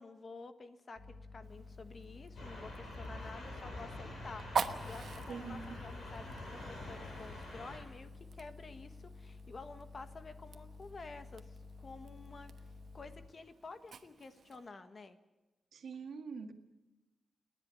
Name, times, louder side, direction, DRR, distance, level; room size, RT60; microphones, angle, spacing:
voice 1, 0.0-12.7 12.9-15.2, left 3 dB, 40° left, 9 dB, 1.4 m, -51 dB
sound 1, 1.0-13.3, left 3 dB, 15° left, 1.7 m, -52 dB
Fire, 1.4-14.7, right 6 dB, 65° right, 1.1 m, -46 dB
sound 2, 2.4-7.8, left 2 dB, 65° left, 7.8 m, -46 dB
voice 2, 5.3-5.8 15.7-16.5, right 5 dB, 85° right, 5 dB, 1.8 m, -44 dB
29.5 x 10.5 x 9.6 m, 1.1 s
wide cardioid pair, 140°, 0 cm